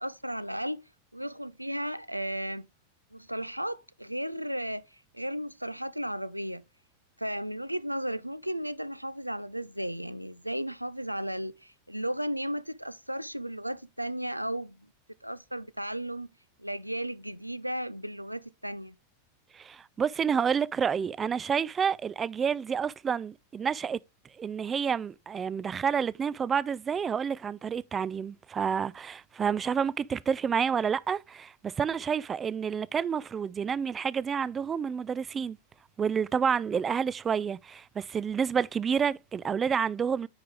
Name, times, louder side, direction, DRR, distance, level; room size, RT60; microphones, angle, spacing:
voice 1, 0.0-0.8 1.1-2.7 3.1-6.6 7.2-14.9 15.2-16.3 16.6-19.0, equal, 90° right, 0.4 m, -35 dB
voice 2, 19.5-24.0 24.4-35.6 36.0-40.3, right 7 dB, 20° right, 0.3 m, -29 dB
9.5 x 4.6 x 3.3 m
figure-of-eight pair, 90°, 0 cm